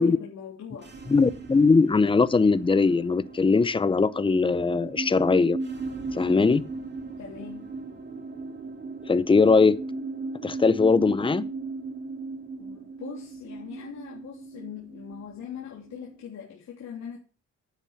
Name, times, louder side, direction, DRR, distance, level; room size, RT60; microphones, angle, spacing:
voice 1, 0.0-1.0 7.2-7.7 12.6-17.2, left 8 dB, 60° left, 3.4 m, -41 dB
sound 1, 0.7-16.2, right 3 dB, 35° right, 3.1 m, -37 dB
voice 2, 1.1-5.6 6.1-6.6 9.1-9.8 10.4-11.4, left 4 dB, 15° left, 0.7 m, -20 dB
10.0 x 9.0 x 6.0 m
cardioid pair, 90°, 30 cm